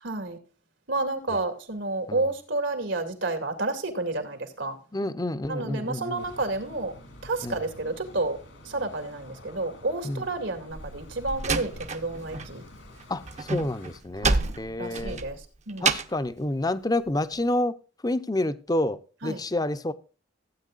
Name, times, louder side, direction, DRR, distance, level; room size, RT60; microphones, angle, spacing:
voice 1, 0.0-0.4 0.9-4.8 5.5-6.9 7.2-8.4 8.6-12.6 14.2-15.9 19.2-19.4, right 2 dB, 80° right, 2.4 m, -30 dB
voice 2, 4.9-6.3 7.4-7.6 10.0-10.3 13.1-15.2 15.8-17.8 18.0-19.9, left 1 dB, 20° left, 0.7 m, -29 dB
sound 1, 6.2-14.0, left 1 dB, 75° left, 2.9 m, -48 dB
Slam, 10.7-12.5 12.8-16.3, right 4 dB, 40° right, 0.8 m, -29 dB
15.5 x 9.0 x 2.5 m
head